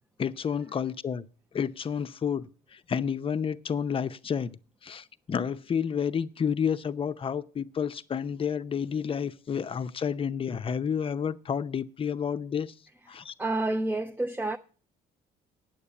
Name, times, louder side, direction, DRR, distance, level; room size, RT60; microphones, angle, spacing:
voice 1, 0.2-1.2 1.5-4.5 4.8-12.7 13.1-13.3, left 7 dB, 30° left, 0.6 m, -30 dB
voice 2, 13.4-14.6, right 2 dB, 10° right, 0.5 m, -28 dB
9.2 x 6.9 x 8.7 m
cardioid pair, 110°, 17 cm